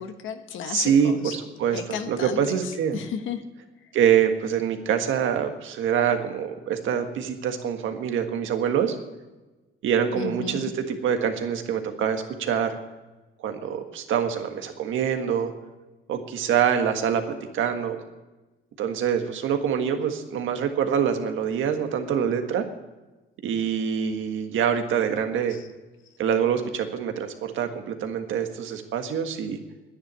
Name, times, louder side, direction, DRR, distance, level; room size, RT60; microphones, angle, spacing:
voice 1, 0.0-1.4 1.7-3.4 10.2-10.7 25.5-25.6, left 7 dB, 80° left, 7 dB, 1.3 m, -33 dB
voice 2, 0.7-1.8 2.1-3.0 3.9-9.0 9.8-12.7 13.4-15.5 16.1-17.2 17.5-18.0 18.8-22.6 23.4-25.6 26.2-29.6, right 8 dB, 80° right, 6 dB, 1.6 m, -25 dB
10.5 x 10.0 x 8.9 m, 1.2 s
cardioid pair, 90°, 20 cm